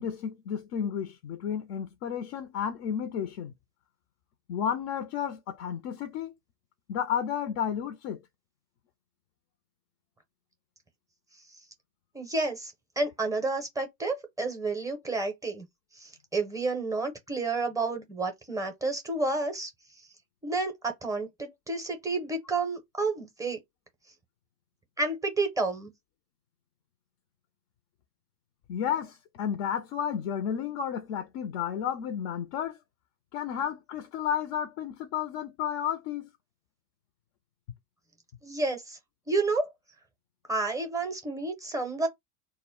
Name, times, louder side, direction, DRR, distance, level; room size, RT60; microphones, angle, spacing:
voice 1, 0.0-3.5 4.5-6.3 6.9-8.2 28.7-32.8 33.3-36.3, left 8 dB, 50° left, 0.5 m, -32 dB
voice 2, 12.1-15.7 16.0-19.7 20.4-23.6 25.0-25.9 38.4-39.0 39.3-39.7 40.5-42.1, right 3 dB, 5° right, 0.5 m, -30 dB
2.1 x 2.0 x 3.6 m
hypercardioid pair, 95°, 47 cm